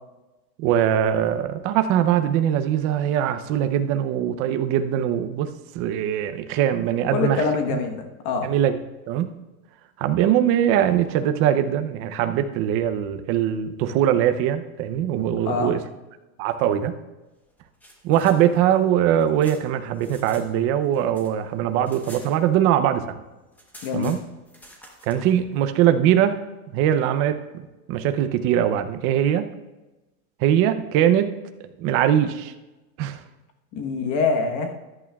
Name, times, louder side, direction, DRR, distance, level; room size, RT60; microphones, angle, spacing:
voice 1, 0.6-7.4 7.7-7.8 8.4-8.8 9.1-9.3 10.0-15.8 16.4-16.9 18.0-23.2 23.9-24.2 25.0-26.4 26.7-27.4 27.9-29.4 30.4-31.3 31.8-32.5 33.0-33.2, right 10 dB, 30° right, 9 dB, 0.5 m, -21 dB
voice 2, 7.1-8.5 15.4-15.7 23.8-24.2 33.7-34.7, left 4 dB, 40° left, 4 dB, 1.1 m, -24 dB
sound 1, 17.5-20.5 20.8-22.9 23.2-23.3 23.5-25.3, equal, 5° left, 1.0 m, -48 dB
14.5 x 11.0 x 2.3 m, 1.1 s
supercardioid pair, 150°, 45 cm